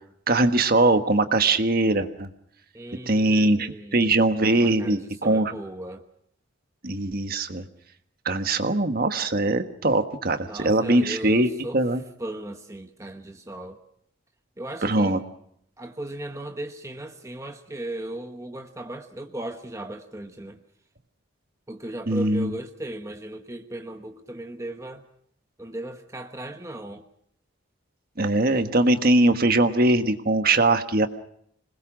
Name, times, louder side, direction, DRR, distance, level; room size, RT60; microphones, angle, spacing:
voice 1, 0.3-2.3 3.1-5.5 6.8-7.6 8.2-12.0 14.8-15.2 22.1-22.5 28.2-31.1, right 2 dB, 45° right, 1.4 m, -21 dB
voice 2, 2.7-4.2 4.5-6.1 10.4-11.8 12.2-13.8 14.6-15.2 15.8-20.6 21.7-25.0 25.6-27.0, right 1 dB, 15° right, 1.1 m, -37 dB
26.5 x 21.0 x 6.2 m
head